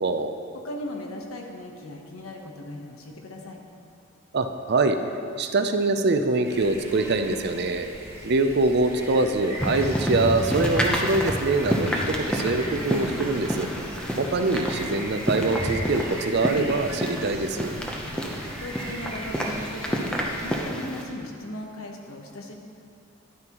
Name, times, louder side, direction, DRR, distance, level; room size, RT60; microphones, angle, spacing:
voice 1, 0.0-0.4 4.3-5.0 5.4-7.9 8.2-13.7 14.2-17.8, right 2 dB, 50° right, 7 dB, 0.5 m, -24 dB
voice 2, 0.5-3.6 17.9-18.2 18.6-22.5, left 1 dB, 90° left, 2 dB, 1.1 m, -38 dB
sound 1, 6.4-20.6, right 1 dB, 10° right, 1.1 m, -39 dB
sound 2, 9.6-21.0, equal, 5° left, 0.7 m, -29 dB
10.5 x 9.6 x 3.0 m, 2.6 s
head